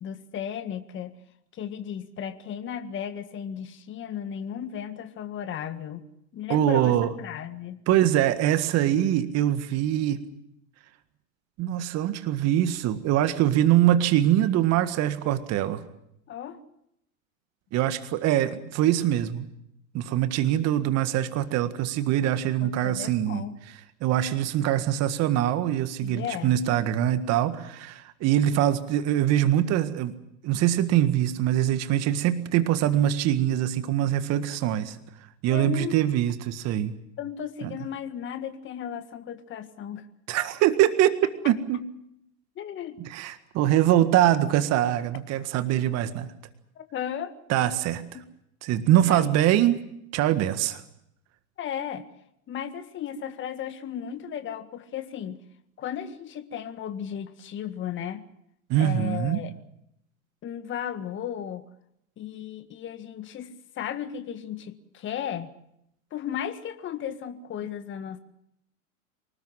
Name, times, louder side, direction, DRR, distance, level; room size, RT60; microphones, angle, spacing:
voice 1, 0.0-1.2 1.5-6.1 6.3-7.8 16.3-16.6 22.6-23.6 26.0-26.6 35.5-36.0 37.2-40.1 42.6-43.0 46.8-47.3 48.1-48.2 49.0-49.3 51.6-52.1 52.5-55.4 55.8-58.2 58.8-59.5 60.4-61.7 62.2-65.5 66.1-68.2, left 9 dB, 25° left, 10 dB, 1.8 m, -35 dB
voice 2, 6.5-7.1 7.9-10.2 11.6-15.8 17.7-19.5 19.9-30.1 30.4-35.0 35.4-37.0 37.6-37.7 40.3-41.2 41.4-41.8 43.0-46.3 47.5-48.2 48.6-49.8 50.1-50.8 58.7-59.4, right 12 dB, 35° right, 11 dB, 1.8 m, -23 dB
25.0 x 20.0 x 7.6 m, 0.77 s
hypercardioid pair, 100°, 42 cm